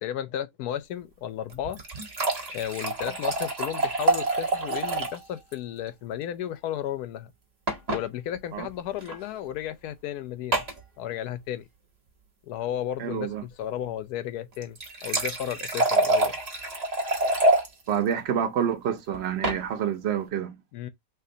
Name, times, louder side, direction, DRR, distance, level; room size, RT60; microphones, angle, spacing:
voice 1, 0.0-1.8 2.5-7.3 7.9-10.6 11.0-11.7 12.5-16.3 20.7-20.9, left 11 dB, 70° left, 1.0 m, -33 dB
sound 1, 1.5-5.2 5.5-5.6 5.9-6.0 7.7-8.0 9.0-9.2 10.5-10.8 14.5-17.7 19.1-19.6, right 2 dB, 30° right, 0.8 m, -26 dB
voice 2, 13.0-13.4 17.9-20.6, right 8 dB, 80° right, 0.5 m, -28 dB
3.4 x 2.2 x 3.7 m
omnidirectional pair, 1.8 m